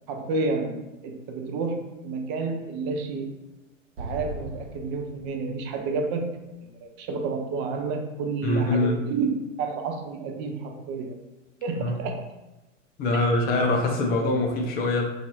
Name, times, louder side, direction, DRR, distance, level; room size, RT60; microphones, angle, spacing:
voice 1, 0.1-3.3 4.0-6.3 6.6-11.2 11.6-12.2, right 4 dB, 30° right, 4 dB, 0.4 m, -30 dB
Explosion, 4.0-7.2, right 1 dB, 55° right, 1.0 m, -40 dB
voice 2, 8.4-8.9 11.7-12.0 13.0-15.1, left 2 dB, 25° left, 1 dB, 0.5 m, -23 dB
2.6 x 2.4 x 3.1 m, 1.0 s
figure-of-eight pair, 100°, 39 cm